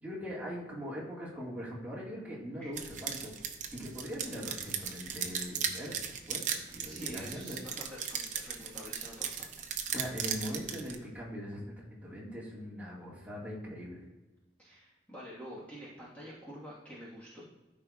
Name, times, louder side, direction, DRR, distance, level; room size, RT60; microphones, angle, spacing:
voice 1, 0.0-3.3 3.7-7.6 9.9-14.1, equal, 10° right, -6 dB, 1.8 m, -41 dB
sound 1, 2.8-11.0, right 7 dB, 45° right, 0.7 m, -37 dB
voice 2, 6.8-9.6 14.6-17.4, equal, 5° left, -9 dB, 1.5 m, -47 dB
13.0 x 5.5 x 2.4 m, 1.1 s
head